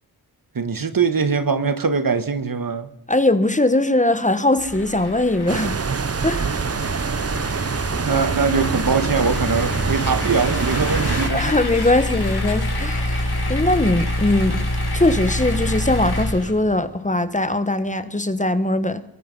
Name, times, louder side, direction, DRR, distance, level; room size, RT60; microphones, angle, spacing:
voice 1, 0.5-2.9 8.0-11.5, right 5 dB, 65° right, 1.6 m, -22 dB
voice 2, 3.1-5.8 6.2-6.6 11.3-14.7 14.9-19.0, left 2 dB, 20° left, 1.4 m, -20 dB
sound 1, 4.6-16.9, left 1 dB, 80° left, 6.5 m, -26 dB
sound 2, 5.5-11.3, right 5 dB, 40° right, 0.8 m, -25 dB
23.5 x 22.5 x 5.5 m
wide cardioid pair, 75°, 37 cm